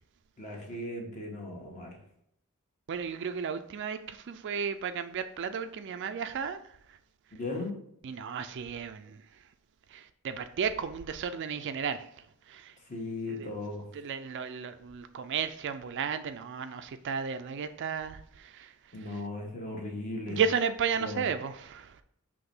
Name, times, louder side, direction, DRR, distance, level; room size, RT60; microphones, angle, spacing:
voice 1, 0.4-2.0 7.3-7.8 12.9-13.9 18.9-20.4 21.0-21.2, left 2 dB, 35° left, 1.3 m, -37 dB
voice 2, 2.9-6.6 8.0-9.2 9.9-12.0 12.5-12.7 13.3-13.5 13.9-18.7 20.3-21.9, right 6 dB, 55° right, 0.4 m, -33 dB
5.9 x 3.1 x 5.3 m
head